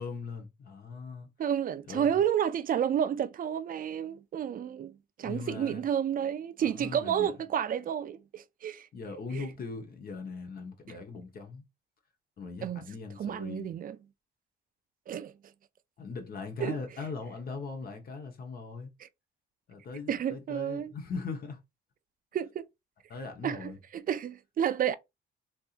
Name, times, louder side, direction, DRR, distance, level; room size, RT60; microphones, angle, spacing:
voice 1, 0.0-1.3 1.9-2.2 5.2-5.9 6.6-7.3 8.9-11.6 12.4-13.7 16.0-18.9 19.7-21.6 23.1-23.8, left 4 dB, 50° left, 1.1 m, -40 dB
voice 2, 1.4-8.9 9.3-9.5 12.6-12.8 13.2-14.0 15.1-15.3 16.6-16.8 19.0-19.1 20.1-20.9 22.3-22.7 23.4-24.9, right 9 dB, 45° right, 0.4 m, -31 dB
3.4 x 2.8 x 2.5 m
cardioid pair, 90°, 20 cm